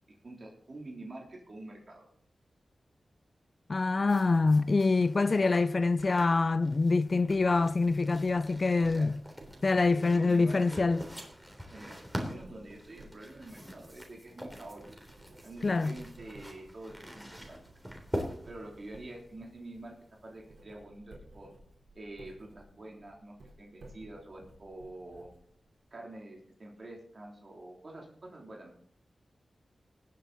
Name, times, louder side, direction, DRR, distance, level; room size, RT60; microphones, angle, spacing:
voice 1, 0.2-2.1 8.8-9.1 9.4-9.5 9.8-10.8 11.6-14.8 15.4-17.6 18.4-19.9 20.2-21.5 21.9-25.3 25.9-28.8, right 2 dB, 50° right, 3.2 m, -47 dB
voice 2, 3.7-9.2 9.6-11.0 15.6-15.9, left 3 dB, 50° left, 0.4 m, -25 dB
sound 1, 4.1-20.6, equal, 5° right, 3.4 m, -45 dB
Writing, 7.2-25.9, right 1 dB, 75° right, 3.9 m, -56 dB
19.5 x 7.7 x 4.1 m
cardioid pair, 50°, 0 cm